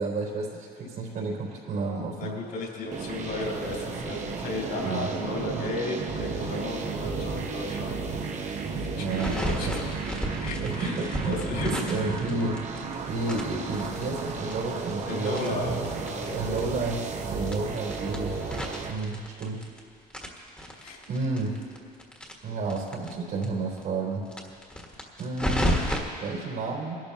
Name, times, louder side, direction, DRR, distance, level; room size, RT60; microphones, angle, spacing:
voice 1, 0.0-2.3 4.8-5.1 9.0-9.8 10.6-12.6 13.1-15.9 16.3-18.3 18.9-19.7 21.1-21.6 22.4-24.2 25.2-25.8 26.2-27.0, right 3 dB, 65° right, -3 dB, 3.7 m, -31 dB
voice 2, 2.2-7.9 8.7-9.9 10.3-10.9 11.2-11.9 13.2-13.3 15.1-15.7 16.0-16.7 20.8-21.0, left 3 dB, 65° left, -3 dB, 3.5 m, -34 dB
sound 1, 2.9-18.9, right 4 dB, 45° right, 1.1 m, -33 dB
sound 2, 9.1-12.9 13.2-16.3 16.6-16.7 16.9-17.0 17.4-19.8 20.1-23.1 23.4-23.5 23.8-23.9 24.3-26.0, equal, 5° left, 1.6 m, -32 dB
21.5 x 12.0 x 2.9 m, 2.3 s
cardioid pair, 110°, 17 cm